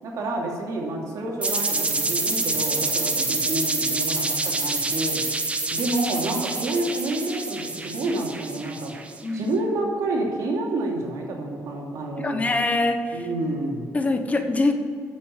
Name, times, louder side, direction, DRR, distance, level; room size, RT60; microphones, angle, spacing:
voice 1, 0.0-5.2 5.7-8.9 9.3-12.4 13.1-13.9, right 2 dB, 75° right, -1 dB, 2.8 m, -28 dB
sound 1, 1.4-9.2, right 3 dB, 20° right, 1.2 m, -27 dB
voice 2, 9.2-9.5 12.2-13.2 13.9-14.7, left 2 dB, 25° left, 6 dB, 1.1 m, -24 dB
10.0 x 7.5 x 8.3 m, 2.2 s
cardioid pair, 110°, 6 cm